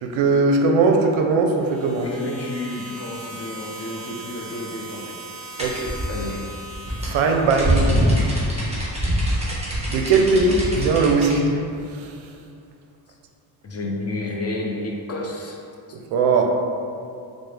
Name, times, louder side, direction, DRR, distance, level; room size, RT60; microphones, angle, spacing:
voice 1, 0.0-2.1 5.6-5.9 7.0-7.9 8.6-8.8 9.4-9.6 9.9-11.6 11.9-12.1 16.1-16.5, right 4 dB, 75° right, 3 dB, 0.5 m, -19 dB
sound 1, 1.6-7.7, right 1 dB, 35° right, 0.6 m, -39 dB
voice 2, 2.0-5.1 6.1-6.3 13.6-15.6 15.9-16.0, left 2 dB, 35° left, -2 dB, 0.5 m, -30 dB
sound 2, 5.6-11.4, equal, 15° right, 1.0 m, -23 dB
3.7 x 2.1 x 3.2 m, 2.5 s
cardioid pair, 80°, 48 cm